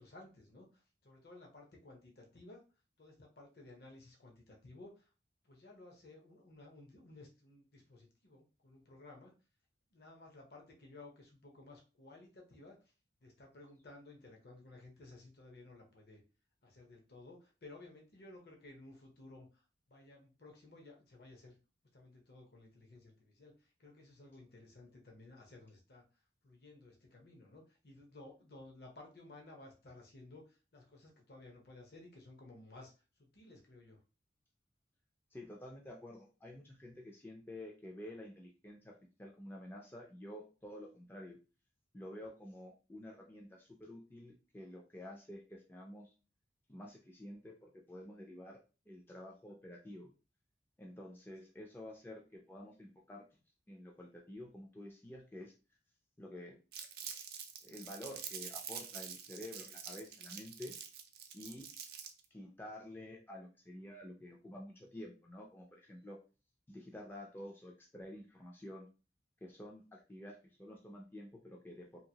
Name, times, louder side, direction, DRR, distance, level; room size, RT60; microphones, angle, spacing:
voice 1, 0.0-2.6 3.0-5.1 5.4-9.3 9.9-12.8 13.2-16.2 16.6-19.6 19.9-21.6 21.9-26.0 26.4-32.9 33.2-34.0, left 2 dB, 60° left, 0 dB, 0.8 m, -56 dB
voice 2, 35.3-41.4 41.9-46.1 46.7-48.6 48.9-50.1 50.8-53.4 53.7-55.5 56.2-56.6 57.6-60.7 61.3-61.7 62.3-66.2 66.7-68.9 69.4-72.0, left 1 dB, 10° left, -1 dB, 0.4 m, -50 dB
Crumpling crinkling, 56.7-62.2, right 8 dB, 55° right, 0.5 m, -46 dB
2.8 x 2.6 x 2.8 m, 0.33 s
head